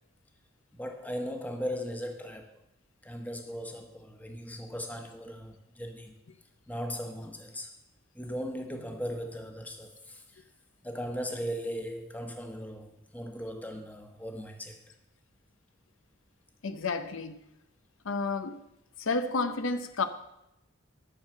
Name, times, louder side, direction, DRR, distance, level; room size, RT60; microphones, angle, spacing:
voice 1, 0.7-2.5 3.0-6.2 6.7-7.7 8.1-10.4 10.8-14.8, equal, 10° left, 1.1 m, -38 dB
voice 2, 16.6-17.4 18.1-18.6 19.0-20.1, left 3 dB, 70° left, 0.7 m, -31 dB
11.0 x 6.4 x 7.5 m
head